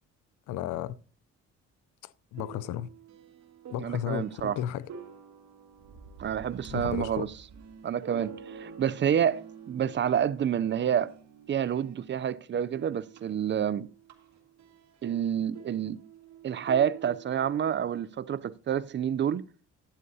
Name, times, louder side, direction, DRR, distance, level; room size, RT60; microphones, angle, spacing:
voice 1, 0.5-1.0 2.0-2.9 3.7-4.9 6.7-7.3, left 11 dB, 90° left, 0.5 m, -34 dB
sound 1, 2.3-12.3 12.6-17.8, right 7 dB, 65° right, 2.0 m, -48 dB
voice 2, 3.8-4.6 6.2-7.3 7.8-11.1 11.5-13.9 15.0-16.0 16.4-19.5, right 9 dB, 40° right, 0.4 m, -28 dB
sound 2, 5.7-8.4, right 3 dB, 85° right, 3.3 m, -48 dB
11.5 x 9.4 x 2.7 m
cardioid pair, 90°, 30 cm